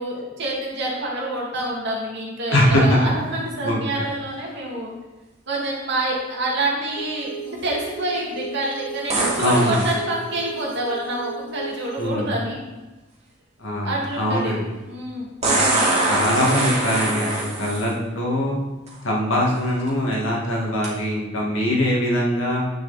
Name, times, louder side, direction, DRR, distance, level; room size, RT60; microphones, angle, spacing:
voice 1, 0.0-4.9 5.5-12.6 13.8-14.6 14.8-15.3, right 1 dB, 60° right, -4 dB, 2.5 m, -27 dB
voice 2, 2.5-3.0 3.6-3.8 9.4-9.9 12.0-12.3 13.6-14.6 15.4-15.6 16.1-18.6 19.0-22.6, left 1 dB, 75° left, -3 dB, 2.3 m, -22 dB
sound 1, 7.0-12.1, right 4 dB, 45° left, 0.8 m, -35 dB
sound 2, 9.1-10.0 12.0-12.1 15.4-17.9 18.9-19.0 19.6-19.9 20.8-20.9, right 2 dB, 35° right, 2.7 m, -23 dB
10.0 x 5.6 x 4.3 m, 1.1 s
head